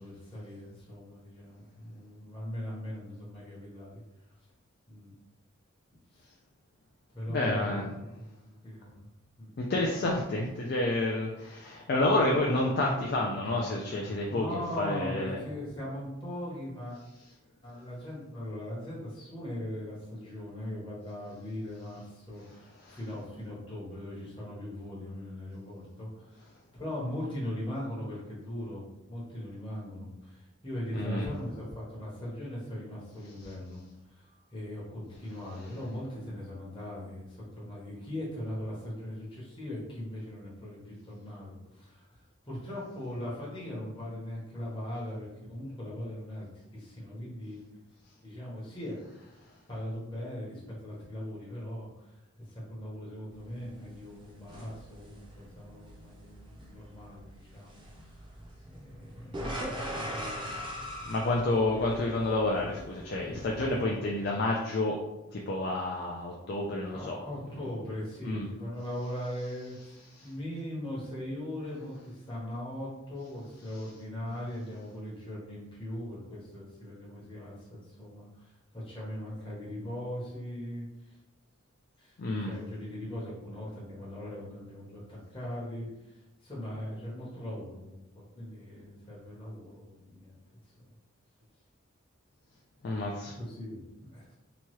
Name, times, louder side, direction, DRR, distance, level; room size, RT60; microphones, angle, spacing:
voice 1, 0.0-4.0 4.9-5.1 6.1-6.2 7.1-9.0 9.4-9.5 14.3-17.0 17.6-26.5 26.7-33.8 34.1-34.2 34.5-42.1 42.4-47.6 48.2-49.0 49.7-52.2 52.5-58.3 58.6-61.1 66.9-70.0 70.2-81.2 82.0-82.2 82.5-85.9 86.4-90.4 93.4-93.8 94.1-94.3, left 1 dB, 25° left, -6 dB, 0.8 m, -40 dB
voice 2, 7.3-7.9 9.6-15.4 22.8-23.0 30.9-31.3 33.4-33.5 35.6-35.7 61.1-65.0 65.3-67.2 68.3-68.5 70.1-70.3 82.2-82.5 92.8-93.4, left 2 dB, 45° left, -2 dB, 0.3 m, -29 dB
sound 1, 53.3-63.8, equal, 25° right, 0.5 m, -42 dB
2.9 x 2.3 x 3.0 m, 0.94 s
head